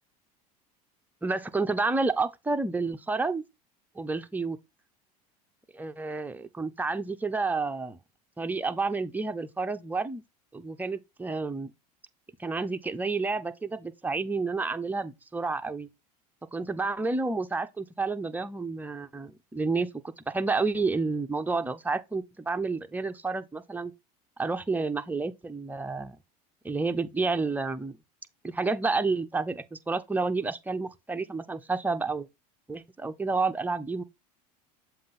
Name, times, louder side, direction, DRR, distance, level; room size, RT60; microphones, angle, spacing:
voice 1, 1.2-3.4 4.0-4.6 5.7-8.0 8.4-10.2 10.5-11.7 12.4-15.9 16.5-23.9 24.4-26.2 26.6-28.0 28.4-32.3 32.7-34.0, right 3 dB, 10° right, 0.7 m, -30 dB
7.4 x 2.6 x 5.7 m
hypercardioid pair, 90°, 20 cm